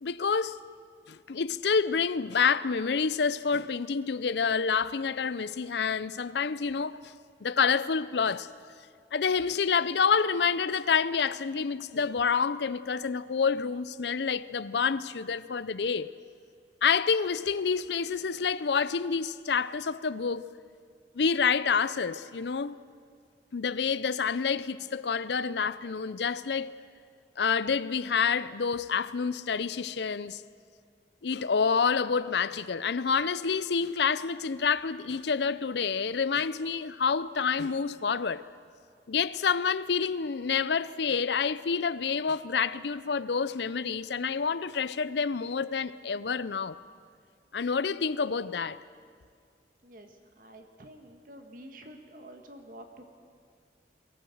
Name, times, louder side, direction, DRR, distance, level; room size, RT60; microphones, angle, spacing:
voice 1, 0.0-0.6 1.1-7.1 7.4-8.5 9.1-16.1 16.8-20.4 21.2-22.8 23.5-26.7 27.4-30.4 31.2-38.4 39.1-46.8 47.5-48.8, left 5 dB, 75° left, 0.6 m, -28 dB
voice 2, 49.8-53.0, right 1 dB, 50° right, 1.7 m, -49 dB
23.0 x 14.5 x 7.9 m
head